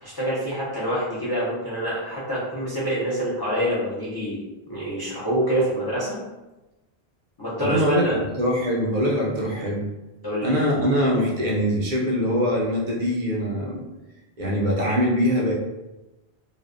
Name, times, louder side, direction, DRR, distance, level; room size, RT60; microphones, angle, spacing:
voice 1, 0.0-4.4 4.7-6.2 7.4-8.1 10.2-10.6, right 1 dB, 30° left, -9 dB, 0.4 m, -26 dB
voice 2, 7.6-9.8 10.4-13.9 14.4-15.5, equal, 55° right, -3 dB, 0.6 m, -23 dB
2.5 x 2.1 x 2.4 m, 1.0 s
omnidirectional pair, 1.1 m